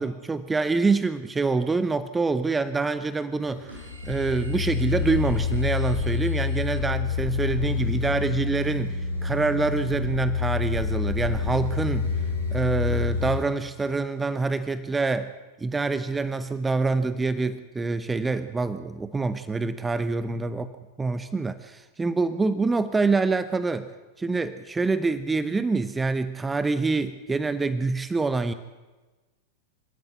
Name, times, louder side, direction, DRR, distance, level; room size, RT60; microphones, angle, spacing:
voice 1, 0.0-12.1 12.5-15.3 15.6-20.7 21.0-23.9 24.2-28.5, right 3 dB, 10° right, 13 dB, 0.8 m, -26 dB
sound 1, 3.4-13.4, left 5 dB, 85° right, 5.3 m, -28 dB
26.5 x 13.0 x 8.2 m, 1.2 s
figure-of-eight pair, 90°, 0 cm